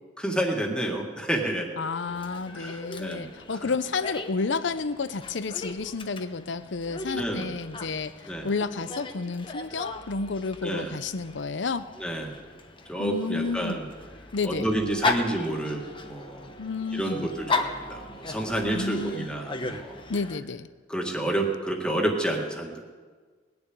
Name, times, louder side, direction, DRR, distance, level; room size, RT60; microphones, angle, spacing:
voice 1, 0.2-1.7 2.5-3.3 3.6-3.7 7.1-7.5 8.3-8.5 10.6-10.9 12.0-12.4 12.9-13.8 14.4-16.5 16.9-20.0 20.9-22.8, right 1 dB, 5° left, 1 dB, 1.8 m, -29 dB
voice 2, 1.8-11.9 13.0-13.8 14.3-14.7 16.6-17.3 18.7-19.3 20.1-20.7, left 4 dB, 80° left, 14 dB, 0.7 m, -31 dB
Dog, 2.1-20.4, left 3 dB, 30° left, 0.9 m, -37 dB
19.5 x 7.0 x 9.5 m, 1.5 s
head